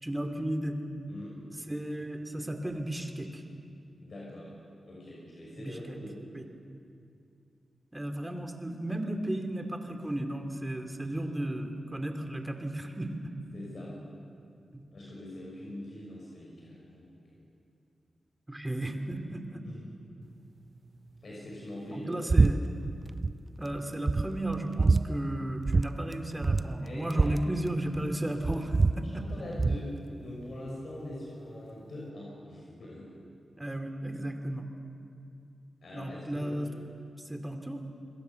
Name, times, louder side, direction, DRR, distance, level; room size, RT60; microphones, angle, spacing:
voice 1, 0.0-0.8 1.7-3.4 5.6-6.0 6.3-6.4 7.9-13.3 14.7-14.8 18.5-19.6 21.9-22.6 23.6-29.3 33.6-34.7 35.9-36.7 37.2-37.8, right 1 dB, 15° right, 5 dB, 2.7 m, -34 dB
voice 2, 1.1-1.4 4.0-4.5 4.9-6.1 11.0-11.3 13.5-13.9 14.9-17.4 19.6-19.8 21.2-22.2 26.8-27.3 29.3-33.1 35.8-36.6, left 1 dB, 65° left, -4 dB, 6.1 m, -43 dB
sound 1, 22.3-22.5 22.8-23.3 23.7-23.8 24.1-25.0 25.6-25.9 26.1-26.2 26.4-28.1 28.4-29.8, right 3 dB, 40° right, 0.5 m, -25 dB
27.5 x 21.5 x 7.1 m, 2.5 s
cardioid pair, 80°, 0 cm